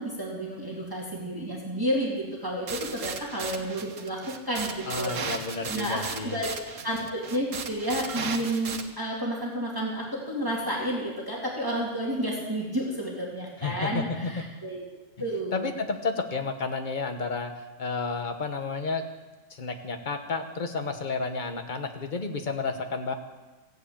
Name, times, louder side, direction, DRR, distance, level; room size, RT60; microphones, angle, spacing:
voice 1, 0.0-4.2 4.5-6.5 6.8-14.8 15.2-15.7, equal, 15° right, -4 dB, 2.4 m, -31 dB
sound 1, 2.7-8.8, right 5 dB, 85° right, 1.5 m, -36 dB
voice 2, 4.9-6.4 13.6-14.5 15.5-17.5 17.8-19.0 19.5-23.1, left 4 dB, 40° left, 6 dB, 1.3 m, -31 dB
16.0 x 8.2 x 8.6 m, 1.2 s
omnidirectional pair, 1.3 m